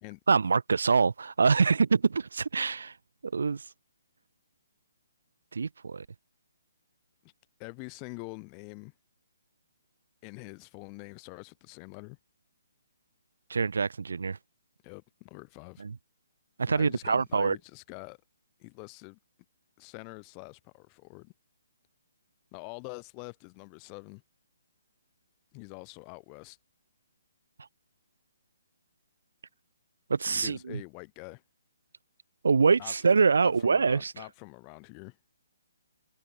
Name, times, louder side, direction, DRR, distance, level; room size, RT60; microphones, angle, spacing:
voice 1, 0.3-2.9 3.2-3.6 5.5-6.0 13.5-14.4 15.8-15.9 16.6-17.6 30.1-30.8 32.4-34.1, right 5 dB, 80° right, 2.8 m, -25 dB
voice 2, 7.6-8.9 10.2-12.2 14.8-15.8 16.7-18.2 18.6-19.2 19.8-21.3 22.5-24.2 25.5-26.6 30.2-31.4 32.8-32.9 33.4-35.2, left 40 dB or more, 25° left, 4.2 m, -45 dB
hypercardioid pair, 155°, 0 cm